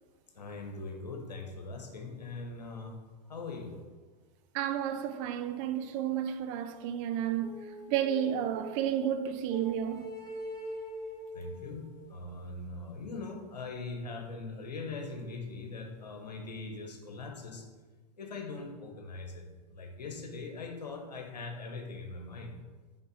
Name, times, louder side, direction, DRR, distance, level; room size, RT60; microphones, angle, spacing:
voice 1, 0.3-3.0 3.3-3.8 11.3-17.7 18.2-22.5, left 3 dB, 85° left, 1.1 m, -41 dB
voice 2, 4.5-10.1, right 9 dB, 50° right, 0.6 m, -32 dB
sound 1, 7.4-8.9 9.5-12.3, equal, 15° left, 1.6 m, -43 dB
5.4 x 5.3 x 4.0 m
hypercardioid pair, 90°, 21 cm